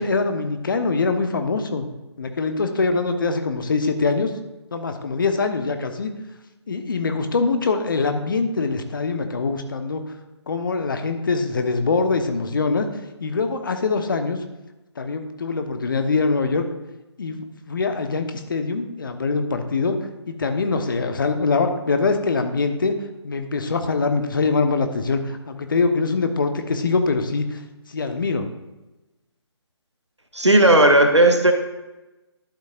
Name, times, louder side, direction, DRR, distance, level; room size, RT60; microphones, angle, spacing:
voice 1, 0.0-1.9 2.2-4.3 4.7-6.1 6.7-10.0 10.5-12.9 13.2-14.4 15.0-16.6 17.2-20.0 20.3-23.0 23.2-27.6 27.9-28.5, left 4 dB, 50° left, 7 dB, 1.0 m, -23 dB
voice 2, 30.3-31.5, right 1 dB, 90° right, 5 dB, 1.3 m, -14 dB
11.5 x 8.4 x 2.5 m, 1.0 s
figure-of-eight pair, 145°, 14 cm